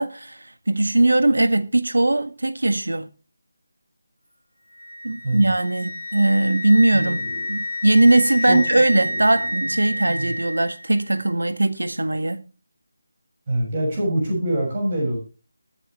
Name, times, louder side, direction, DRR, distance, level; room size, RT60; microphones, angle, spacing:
voice 1, 0.0-3.1 5.0-7.2 7.5-12.4, right 2 dB, 65° right, 1.6 m, -20 dB
Wind instrument woodwind instrument, 4.8-10.7, left 1 dB, 85° right, 3.7 m, -29 dB
voice 2, 6.9-7.4 8.5-9.5 9.8-10.3 13.5-15.2, right 1 dB, 30° right, 6.4 m, -26 dB
20.5 x 9.2 x 3.3 m
figure-of-eight pair, 160°, 0 cm